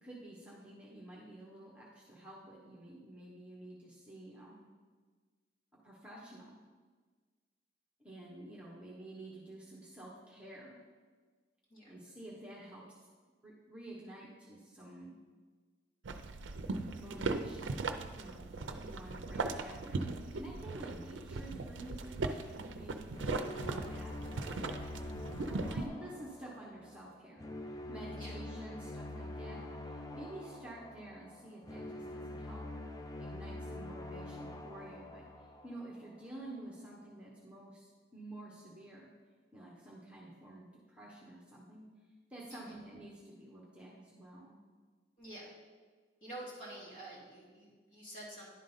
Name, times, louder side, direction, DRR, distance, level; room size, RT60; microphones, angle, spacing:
voice 1, 0.0-4.7 5.8-6.6 8.0-10.8 11.9-13.1 13.4-15.1 17.0-17.9 18.1-25.4 25.6-32.6 33.2-35.2 35.6-39.1 39.5-41.9 42.3-44.6, right 1 dB, 5° right, -4 dB, 1.0 m, -50 dB
sound 1, 16.0-25.9, right 3 dB, 85° right, 0.5 m, -39 dB
sound 2, 23.1-36.2, left 1 dB, 20° left, 0.4 m, -45 dB
voice 2, 45.2-45.5 46.2-48.5, right 1 dB, 45° left, -6 dB, 2.7 m, -48 dB
10.5 x 3.8 x 5.4 m, 1.5 s
head